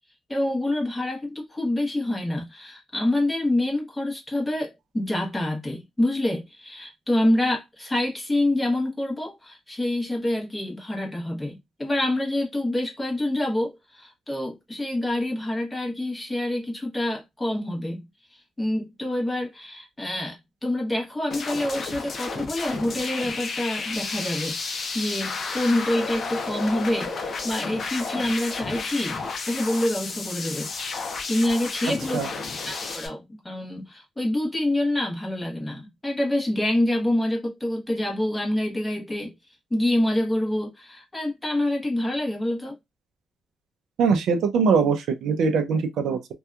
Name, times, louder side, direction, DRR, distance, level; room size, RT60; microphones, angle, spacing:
voice 1, 0.3-18.0 18.3-29.2 29.5-32.2 32.6-39.3 39.7-42.7, left 1 dB, 10° left, 0.9 m, -27 dB
sound 1, 21.3-33.1, left 4 dB, 45° left, 0.5 m, -32 dB
voice 2, 44.0-46.3, right 5 dB, 80° right, 0.5 m, -22 dB
2.7 x 2.2 x 2.3 m
cardioid pair, 135°, 0 cm